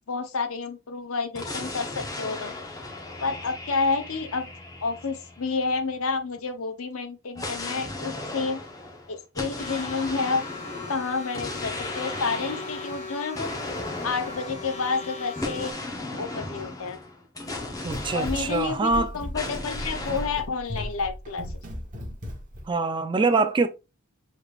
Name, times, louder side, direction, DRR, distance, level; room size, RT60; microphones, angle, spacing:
voice 1, 0.1-2.5 3.2-4.5 4.8-8.6 9.1-10.4 10.9-13.5 14.0-15.7 16.2-17.0 18.1-21.4, left 4 dB, 70° left, 0.7 m, -29 dB
sound 1, 1.3-6.1 7.3-19.0 19.3-20.4, left 2 dB, 15° left, 0.7 m, -36 dB
sound 2, 9.6-15.7, left 4 dB, 30° left, 1.1 m, -39 dB
Run, 17.4-22.7, equal, 35° right, 1.0 m, -36 dB
voice 2, 17.8-19.1 22.7-23.7, right 3 dB, 20° right, 0.4 m, -24 dB
6.5 x 3.2 x 2.4 m
head